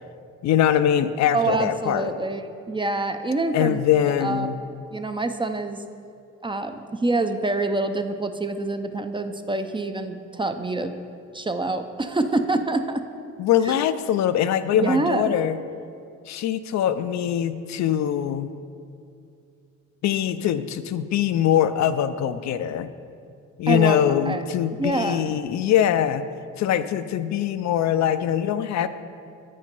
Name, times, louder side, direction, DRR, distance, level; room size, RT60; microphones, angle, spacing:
voice 1, 0.4-2.1 3.5-4.6 13.4-15.6 16.3-18.5 20.0-22.9 23.6-26.3 26.6-28.9, left 10 dB, 65° left, 11 dB, 0.4 m, -22 dB
voice 2, 1.3-2.4 2.7-4.5 4.9-5.8 6.4-10.9 11.3-13.0 13.6-13.7 14.7-15.3 23.7-24.0 24.3-24.4 24.7-25.3, right 2 dB, 15° right, 7 dB, 0.4 m, -26 dB
8.5 x 5.4 x 5.3 m, 2.5 s
cardioid pair, 90°, 30 cm